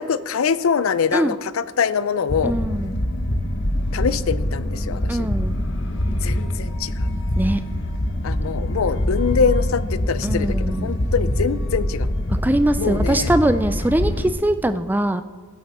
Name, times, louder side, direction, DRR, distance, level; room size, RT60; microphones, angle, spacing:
voice 1, 0.0-2.5 3.9-5.3 6.2-7.1 8.2-10.6 10.8-12.1 12.8-13.3, left 6 dB, 80° left, 15 dB, 0.5 m, -23 dB
sound 1, 2.3-14.3, left 1 dB, 60° left, 1.0 m, -24 dB
voice 2, 2.4-3.0 5.1-5.6 7.4-7.6 10.2-11.1 12.3-15.2, right 1 dB, 10° right, 11 dB, 0.3 m, -22 dB
16.0 x 7.8 x 4.2 m, 1.5 s
head